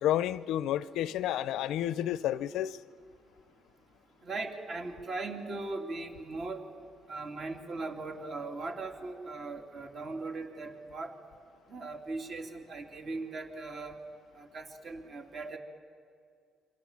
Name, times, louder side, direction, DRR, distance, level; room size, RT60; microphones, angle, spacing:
voice 1, 0.0-2.8, left 12 dB, 90° left, 0.7 m, -30 dB
voice 2, 4.2-6.6 7.1-11.1 11.7-14.0 14.3-15.6, right 3 dB, 45° right, 3.2 m, -39 dB
27.5 x 25.0 x 7.5 m
cardioid pair, 125°, 0 cm